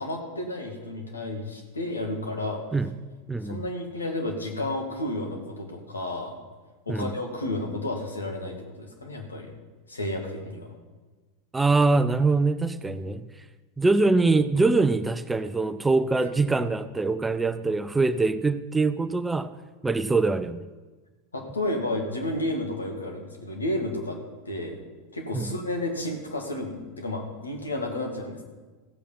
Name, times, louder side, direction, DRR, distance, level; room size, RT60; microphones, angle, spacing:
voice 1, 0.0-2.6 3.4-6.4 6.9-9.5 9.9-10.7 21.3-24.2 24.5-24.8 25.1-28.4, left 1 dB, 85° left, 2 dB, 2.1 m, -31 dB
voice 2, 3.3-3.6 6.9-7.1 11.5-13.2 13.8-19.5 19.8-20.6 25.3-25.5, right 3 dB, 10° right, 12 dB, 0.6 m, -23 dB
15.0 x 8.4 x 5.5 m, 1.3 s
figure-of-eight pair, 85°, 0 cm